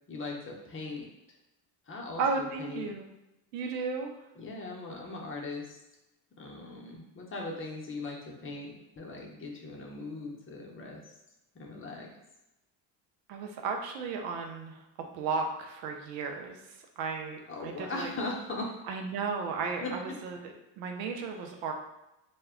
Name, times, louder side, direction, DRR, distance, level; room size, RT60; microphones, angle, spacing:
voice 1, 0.1-1.0 1.9-2.8 4.4-5.8 6.4-11.0 11.5-12.1 17.5-18.7 19.8-19.9, left 3 dB, 25° left, -1 dB, 0.6 m, -39 dB
voice 2, 2.2-3.1 3.5-4.1 13.3-14.8 15.1-16.6 17.0-18.1 18.9-21.7, right 4 dB, 85° right, 3 dB, 0.6 m, -34 dB
2.1 x 2.1 x 3.5 m, 0.94 s
supercardioid pair, 85°, 48 cm